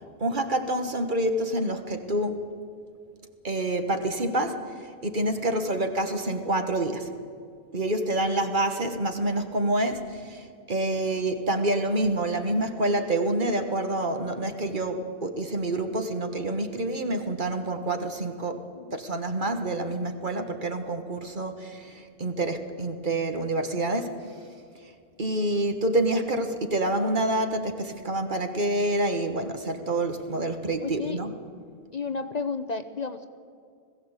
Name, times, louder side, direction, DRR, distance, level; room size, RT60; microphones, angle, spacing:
voice 1, 0.2-2.5 3.4-7.1 7.7-24.3 25.2-31.3, right 1 dB, 45° right, 6 dB, 1.6 m, -27 dB
voice 2, 5.5-5.8 18.5-19.0 30.8-31.2 31.9-33.3, left 4 dB, 45° left, 9 dB, 0.8 m, -33 dB
20.0 x 16.0 x 8.2 m, 2.4 s
omnidirectional pair, 1.1 m